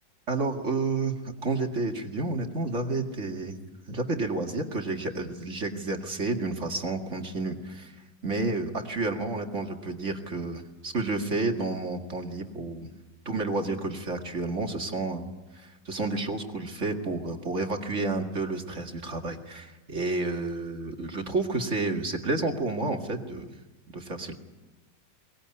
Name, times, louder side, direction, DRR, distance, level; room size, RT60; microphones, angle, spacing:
voice 1, 0.3-3.6 3.9-7.9 8.2-12.9 13.3-15.3 15.6-23.5 23.9-24.3, right 3 dB, 40° right, 3 dB, 2.5 m, -30 dB
23.5 x 20.0 x 9.9 m, 1.1 s
omnidirectional pair, 1.9 m